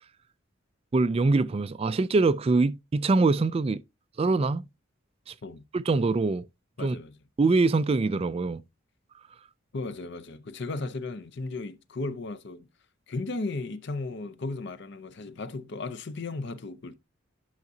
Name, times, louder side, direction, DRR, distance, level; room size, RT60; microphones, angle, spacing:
voice 1, 0.9-3.8 4.2-4.7 5.3-5.4 5.7-6.5 6.8-7.0 7.4-8.6, right 3 dB, 30° right, 0.3 m, -24 dB
voice 2, 6.8-7.1 9.7-12.7 13.1-16.9, left 3 dB, 60° left, 0.6 m, -35 dB
10.5 x 5.8 x 2.7 m
head